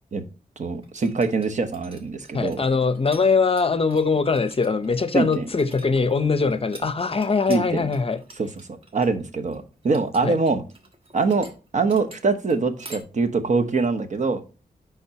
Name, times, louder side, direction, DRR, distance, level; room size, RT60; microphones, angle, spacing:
voice 1, 0.6-2.6 5.1-5.5 7.5-7.9 8.4-10.6 11.1-11.5 11.7-14.4, right 4 dB, 50° right, 1.0 m, -24 dB
sound 1, 0.8-3.2 3.5-13.0, right 2 dB, 35° right, 1.4 m, -46 dB
voice 2, 2.3-8.2 10.2-10.4, left 4 dB, 40° left, 0.6 m, -22 dB
10.0 x 3.6 x 2.8 m
wide cardioid pair, 85°, 16 cm